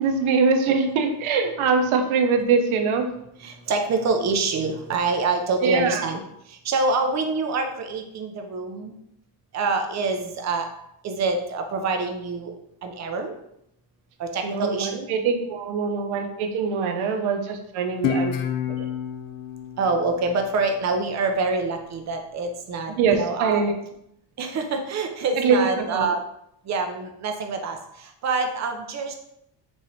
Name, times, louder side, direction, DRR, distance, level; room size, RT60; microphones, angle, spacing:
voice 1, 0.0-3.1 5.6-6.0 14.4-18.3 18.7-18.9 23.0-23.7 25.4-25.6 25.9-26.1, right 5 dB, 85° right, 5 dB, 0.7 m, -23 dB
voice 2, 3.4-8.9 9.5-10.7 11.0-12.5 12.8-13.3 14.2-15.1 19.8-23.6 24.4-26.2 26.6-29.1, right 3 dB, 35° right, 5 dB, 0.5 m, -26 dB
Guitar, 18.0-21.2, left 7 dB, 45° left, 0.5 m, -29 dB
4.7 x 3.1 x 2.7 m, 0.77 s
cardioid pair, 150°, 47 cm